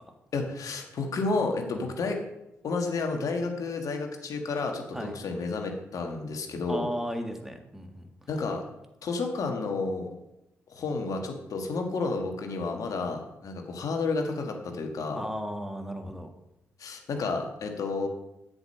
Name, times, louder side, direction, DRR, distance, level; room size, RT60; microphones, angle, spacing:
voice 1, 0.3-2.2 2.6-6.9 8.3-8.6 9.0-10.1 10.7-15.2 16.8-18.1, left 3 dB, 60° left, 3 dB, 1.6 m, -31 dB
voice 2, 6.7-8.1 15.1-16.3, equal, 5° right, 5 dB, 1.7 m, -35 dB
8.0 x 5.4 x 6.4 m, 0.91 s
hypercardioid pair, 40°, 7 cm